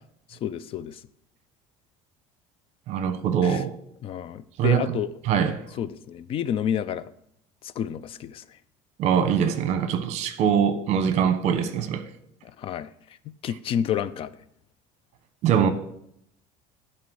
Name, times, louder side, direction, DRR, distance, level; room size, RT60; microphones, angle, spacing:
voice 1, 0.3-1.0 3.4-3.6 4.0-5.1 5.8-7.1 7.6-8.4 12.4-12.9 13.4-14.3, left 9 dB, 40° left, 0.4 m, -30 dB
voice 2, 2.9-3.7 4.6-4.8 5.3-5.6 9.0-12.0 15.4-15.7, right 8 dB, 55° right, 1.1 m, -22 dB
11.5 x 4.3 x 6.2 m
cardioid pair, 140°, 14 cm